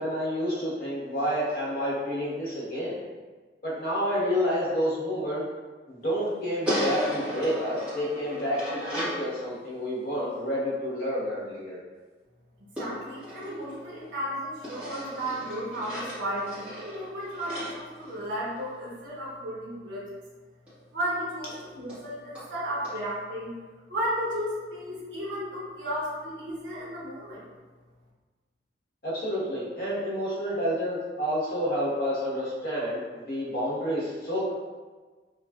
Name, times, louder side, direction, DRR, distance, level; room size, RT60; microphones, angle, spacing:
voice 1, 0.0-3.0 3.6-5.5 5.9-11.8 29.0-34.5, equal, 55° left, -7 dB, 0.9 m, -29 dB
sound 1, 6.6-9.2 12.8-14.2 14.6-18.7 20.7-20.8 21.0-21.1 21.5-21.6 21.9-22.0 22.3-22.5 22.8-23.0, equal, 5° right, 1.1 m, -35 dB
voice 2, 12.8-20.1 20.9-23.5 23.9-27.5, equal, 85° right, -5 dB, 0.7 m, -34 dB
3.3 x 2.3 x 2.3 m, 1.4 s
head